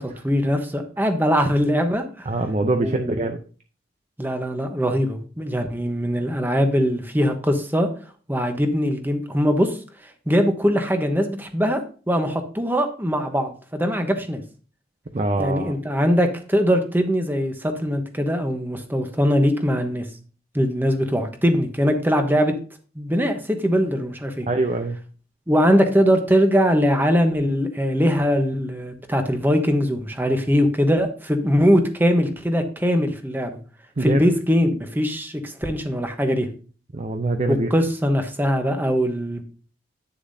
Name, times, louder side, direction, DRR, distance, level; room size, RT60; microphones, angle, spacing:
voice 1, 0.0-2.3 2.8-3.2 4.2-7.9 8.3-14.4 15.4-20.1 20.5-22.5 23.0-24.5 25.5-33.6 34.0-36.5 37.5-39.4, equal, 10° right, 6 dB, 1.0 m, -21 dB
voice 2, 2.3-3.4 15.1-15.7 24.5-25.0 34.0-34.2 36.9-37.7, right 2 dB, 40° right, 6 dB, 0.5 m, -23 dB
9.4 x 6.8 x 2.7 m, 0.38 s
head